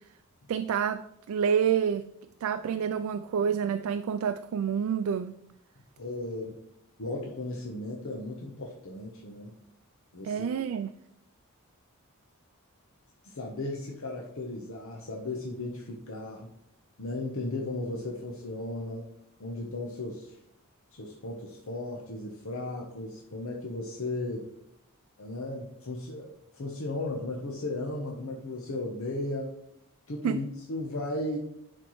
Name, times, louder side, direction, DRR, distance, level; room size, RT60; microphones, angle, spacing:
voice 1, 0.5-2.1 2.4-5.4 10.2-10.9 30.2-30.4, right 7 dB, 75° right, 0.3 m, -28 dB
voice 2, 6.0-6.6 7.0-9.5 10.1-10.5 13.2-16.5 17.0-19.1 19.4-20.3 20.9-24.5 25.2-29.5 30.1-31.4, left 2 dB, 65° left, 0.9 m, -35 dB
10.0 x 4.4 x 3.1 m
head